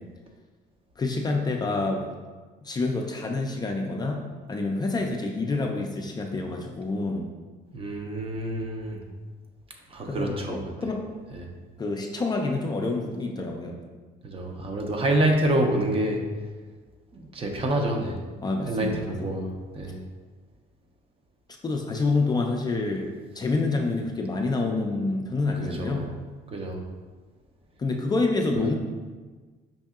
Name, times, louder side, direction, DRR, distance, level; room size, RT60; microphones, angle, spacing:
voice 1, 1.0-2.1 2.6-4.2 4.5-7.3 10.1-11.0 11.8-13.8 18.4-19.3 21.6-23.1 23.3-26.1 27.8-28.8, left 3 dB, 25° left, 1 dB, 0.4 m, -27 dB
voice 2, 7.7-9.0 9.9-10.7 11.3-11.5 14.2-16.2 17.1-18.2 18.7-20.0 25.6-26.1 26.5-26.8, right 1 dB, 35° right, 3 dB, 0.5 m, -27 dB
5.3 x 2.6 x 2.3 m, 1.4 s
cardioid pair, 110°, 17 cm